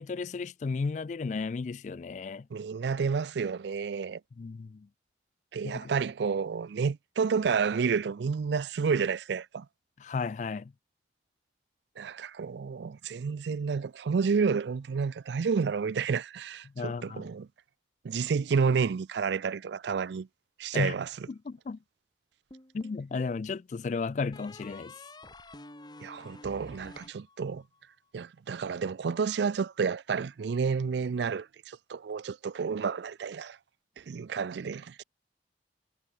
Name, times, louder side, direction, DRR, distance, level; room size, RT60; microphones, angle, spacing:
voice 1, 0.0-2.5 4.4-4.9 5.6-5.9 10.0-10.7 16.8-17.3 20.7-20.9 21.3-21.8 22.7-24.9, left 4 dB, 40° left, 0.3 m, -34 dB
voice 2, 2.5-4.2 5.5-9.7 12.0-17.5 18.0-20.3 20.6-21.1 26.0-27.6 28.1-33.6 34.0-35.0, right 5 dB, 75° right, 0.4 m, -30 dB
sound 1, 22.5-23.4 24.3-27.8, left 2 dB, 25° left, 2.3 m, -49 dB
head